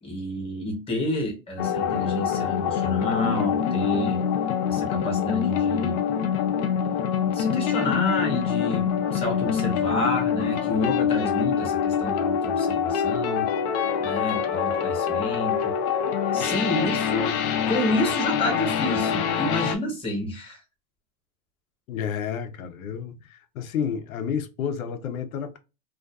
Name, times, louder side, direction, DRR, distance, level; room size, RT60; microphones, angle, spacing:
voice 1, 0.0-4.2 4.7-6.0 7.2-13.5 14.0-15.8 16.3-17.4 17.7-20.6, left 1 dB, 15° left, 0.9 m, -29 dB
sound 1, 1.6-19.8, left 8 dB, 50° left, 0.5 m, -25 dB
voice 2, 21.9-25.6, left 7 dB, 90° left, 0.7 m, -30 dB
2.5 x 2.3 x 2.2 m
supercardioid pair, 150°, 40 cm